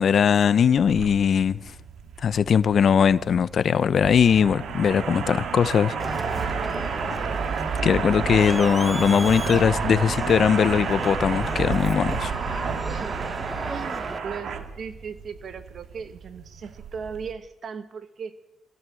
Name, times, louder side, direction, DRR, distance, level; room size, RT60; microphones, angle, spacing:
voice 1, 0.0-1.6 2.2-5.9 6.4-6.5 7.8-12.3, left 7 dB, 55° left, 0.8 m, -20 dB
sound 1, 0.8-17.3, right 6 dB, 70° right, 2.4 m, -31 dB
Crowd, 6.0-14.2, right 1 dB, 5° right, 1.1 m, -35 dB
voice 2, 12.9-18.3, right 6 dB, 50° right, 2.1 m, -37 dB
24.0 x 16.0 x 7.8 m
cardioid pair, 90°, 0 cm